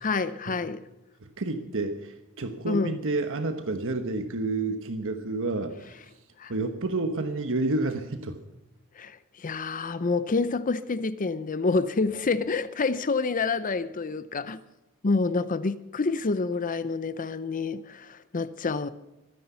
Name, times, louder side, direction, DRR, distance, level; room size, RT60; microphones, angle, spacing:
voice 1, 0.0-0.8 2.7-2.9 6.4-6.5 9.0-14.6 15.0-18.9, left 4 dB, 35° left, 0.6 m, -28 dB
voice 2, 1.2-5.7 6.5-8.4, right 2 dB, 60° right, 1.3 m, -29 dB
23.5 x 10.0 x 5.7 m
head